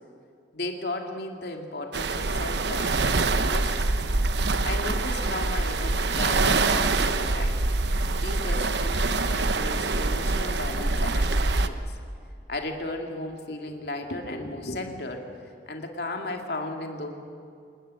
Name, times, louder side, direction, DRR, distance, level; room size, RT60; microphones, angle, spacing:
voice 1, 0.5-3.9 4.3-7.6 8.2-12.0 12.5-15.2 15.7-17.1, left 2 dB, 65° left, 3 dB, 2.5 m, -35 dB
sound 1, 1.9-11.7, right 3 dB, 80° right, 1.0 m, -25 dB
26.5 x 20.0 x 7.8 m, 2.4 s
head